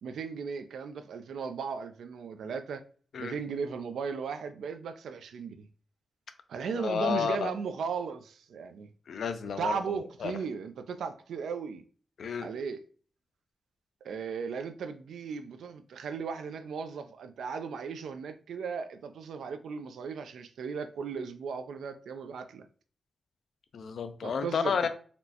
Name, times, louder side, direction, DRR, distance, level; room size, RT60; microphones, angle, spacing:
voice 1, 0.0-2.8 3.2-5.6 6.5-8.9 9.6-11.8 12.4-12.8 14.0-22.7 24.2-24.9, right 5 dB, 90° right, 0.3 m, -36 dB
voice 2, 6.7-7.5 9.1-9.8 10.2-10.3 12.2-12.5 23.7-24.9, left 6 dB, 75° left, 0.4 m, -31 dB
4.2 x 2.1 x 2.8 m
cardioid pair, 65°, 0 cm